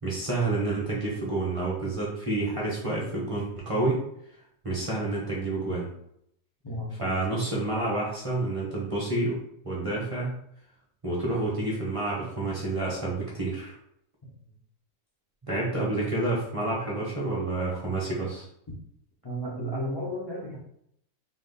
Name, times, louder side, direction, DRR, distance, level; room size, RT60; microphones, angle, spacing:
voice 1, 0.0-4.0 4.6-5.9 7.0-10.3 11.0-13.7 15.4-18.4, right 2 dB, 30° right, -5 dB, 0.7 m, -29 dB
voice 2, 6.6-7.2 19.2-20.6, equal, 25° left, -4 dB, 0.5 m, -33 dB
4.2 x 2.4 x 3.9 m, 0.72 s
omnidirectional pair, 1.6 m